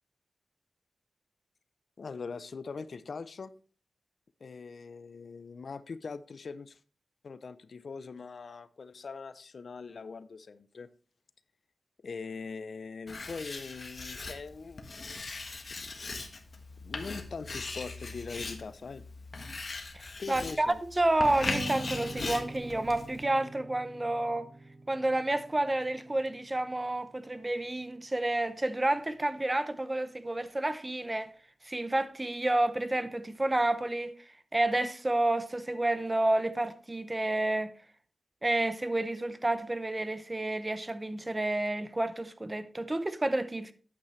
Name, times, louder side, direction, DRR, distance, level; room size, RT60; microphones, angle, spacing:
voice 1, 2.0-3.5 4.4-6.8 7.2-10.9 12.0-15.1 15.8-16.0 16.8-19.0 20.2-20.8, left 4 dB, 65° left, 0.5 m, -42 dB
Writing, 13.1-23.2, left 3 dB, 50° left, 1.4 m, -40 dB
voice 2, 20.3-24.5 24.9-31.3 31.6-34.2 34.5-37.7 38.4-43.7, right 1 dB, 20° right, 0.7 m, -30 dB
Strum, 21.4-27.7, right 2 dB, 65° right, 2.6 m, -43 dB
9.4 x 8.5 x 3.2 m
wide cardioid pair, 105°, 0 cm